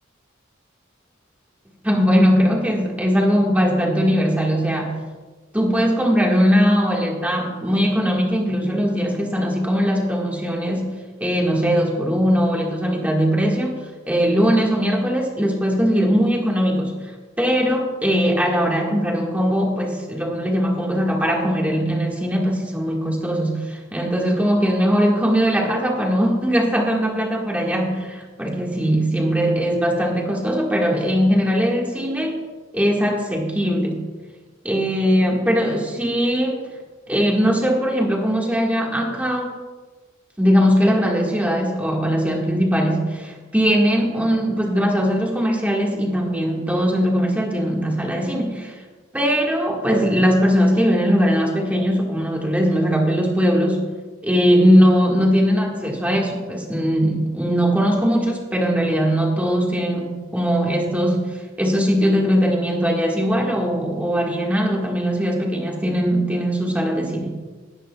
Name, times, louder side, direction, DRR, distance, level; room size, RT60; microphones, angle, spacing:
voice 1, 1.8-4.9 5.5-10.9 11.2-13.7 14.1-17.1 17.4-32.4 32.7-34.0 34.6-36.6 37.1-39.5 40.4-48.8 49.1-53.9 54.2-67.3, equal, 10° right, -1 dB, 1.7 m, -20 dB
18.0 x 10.5 x 2.3 m, 1.3 s
head